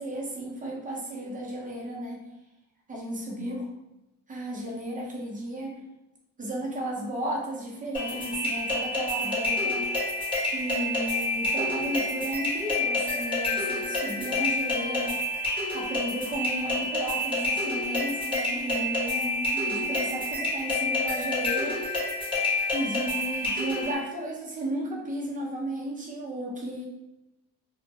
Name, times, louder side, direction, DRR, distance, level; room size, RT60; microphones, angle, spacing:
voice 1, 0.0-2.2 2.9-3.7 4.3-5.8 6.4-9.9 10.5-15.2 15.7-21.8 22.7-26.9, right 1 dB, 20° right, -2 dB, 0.6 m, -34 dB
sound 1, 7.9-23.9, left 1 dB, 15° left, 1.1 m, -28 dB
2.2 x 2.1 x 2.8 m, 0.93 s
cardioid pair, 95°, 40 cm